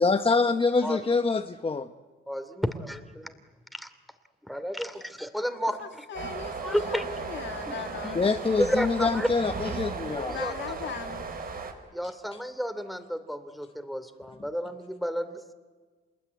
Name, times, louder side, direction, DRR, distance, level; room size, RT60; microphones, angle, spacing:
voice 1, 0.0-1.9 8.1-10.3, left 4 dB, 25° left, 7 dB, 1.1 m, -25 dB
voice 2, 2.3-3.3 3.7-3.9 4.5-5.8 6.6-7.1 8.0-8.1 8.6-9.3 10.2-10.5 11.9-15.5, equal, ahead, 10 dB, 2.7 m, -31 dB
voice 3, 5.5-8.3 10.3-11.3, left 8 dB, 65° left, 7 dB, 2.2 m, -39 dB
sound 1, 6.1-11.7, right 4 dB, 50° right, 5.0 m, -36 dB
28.0 x 21.0 x 9.6 m, 1.4 s
cardioid pair, 90°, 20 cm